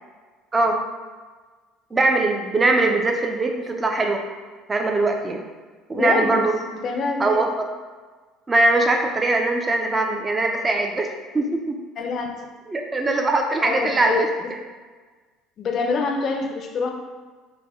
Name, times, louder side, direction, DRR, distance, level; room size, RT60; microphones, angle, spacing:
voice 1, 1.9-4.2 4.7-5.4 5.9-6.5 7.2-7.7 8.5-11.1 11.3-11.8 12.7-14.3, right 2 dB, 25° right, 3 dB, 0.4 m, -21 dB
voice 2, 5.9-6.4 6.8-7.5 12.0-12.4 13.6-14.2 15.6-16.9, left 4 dB, 50° left, 3 dB, 0.5 m, -25 dB
3.3 x 2.1 x 3.4 m, 1.4 s
supercardioid pair, 95°, 0 cm